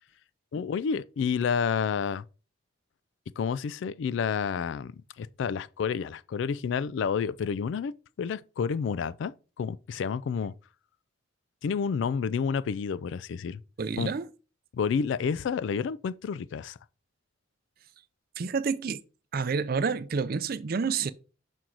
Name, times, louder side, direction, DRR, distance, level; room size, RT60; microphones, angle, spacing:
voice 1, 0.5-2.2 3.4-4.9 5.2-10.5 11.6-13.6 14.0-14.1 14.7-16.8, left 6 dB, 70° left, 0.3 m, -30 dB
voice 2, 13.8-14.3 18.4-19.0 19.3-21.1, right 5 dB, 50° right, 0.4 m, -29 dB
6.0 x 4.5 x 3.9 m
head